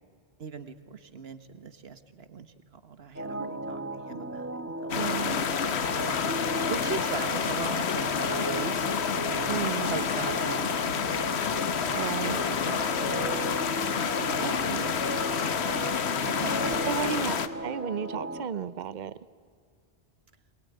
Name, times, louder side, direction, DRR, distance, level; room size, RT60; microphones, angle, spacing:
voice 1, 0.4-5.6 5.9-8.7 9.4-11.2 11.8-13.5 14.2-14.5 14.8-15.3 15.7-17.3, right 5 dB, 70° right, 11 dB, 1.6 m, -40 dB
sound 1, 3.2-18.5, right 1 dB, 15° right, 1.1 m, -36 dB
sound 2, 4.9-17.5, left 7 dB, 75° left, 1.2 m, -29 dB
voice 2, 5.0-5.4 9.5-9.9 11.9-12.4 14.4-14.9 16.8-17.3 17.6-19.1, right 7 dB, 50° right, 16 dB, 0.8 m, -33 dB
21.5 x 21.5 x 9.4 m, 2.2 s
omnidirectional pair, 1.1 m